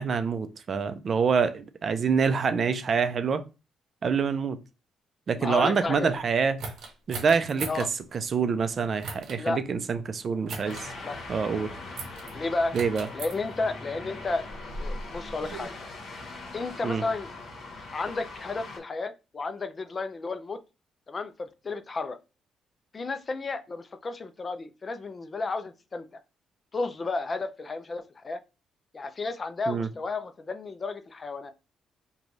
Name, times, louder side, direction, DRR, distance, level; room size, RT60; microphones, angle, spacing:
voice 1, 0.0-3.4 4.0-4.6 5.3-6.6 7.1-7.9 8.1-10.9 11.3-11.7 12.7-13.1 16.8-17.0 29.7-29.9, right 5 dB, 45° right, 0.4 m, -26 dB
voice 2, 5.4-6.1 7.7-7.9 9.4-9.6 11.0-11.2 12.3-12.8 13.1-14.5 14.8-15.7 16.5-17.3 17.9-20.6 21.1-22.2 22.9-26.2 26.7-28.4 28.9-31.5, left 3 dB, 35° left, 0.4 m, -32 dB
sound 1, 6.6-7.9 9.0-9.4 10.5-10.9 12.0-12.3 12.7-13.3 14.2-15.7, right 3 dB, 80° right, 0.9 m, -38 dB
sound 2, 10.6-18.8, left 3 dB, 60° left, 1.1 m, -41 dB
3.1 x 2.3 x 3.9 m
cardioid pair, 90°, 0 cm